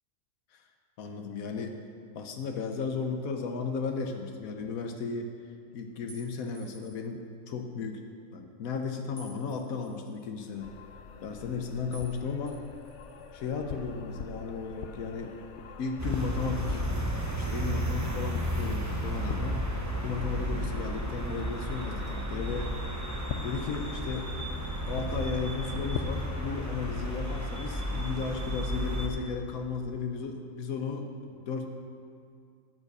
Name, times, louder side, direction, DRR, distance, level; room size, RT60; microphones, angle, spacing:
voice 1, 1.0-1.8 2.1-5.3 5.7-8.0 8.3-10.7 11.2-12.6 13.3-15.3 15.8-16.8 17.4-19.6 20.0-22.7 23.4-24.3 24.8-31.7, left 5 dB, 85° left, 4 dB, 1.3 m, -35 dB
sound 1, 6.1-7.1 9.2-10.2 11.9-12.2 12.5-13.4, right 1 dB, 40° left, 4.1 m, -53 dB
sound 2, 10.6-27.5, left 6 dB, 65° left, 0.9 m, -44 dB
sound 3, 16.0-29.1, equal, 15° right, 1.0 m, -33 dB
14.0 x 7.3 x 6.6 m, 2.3 s
omnidirectional pair, 1.4 m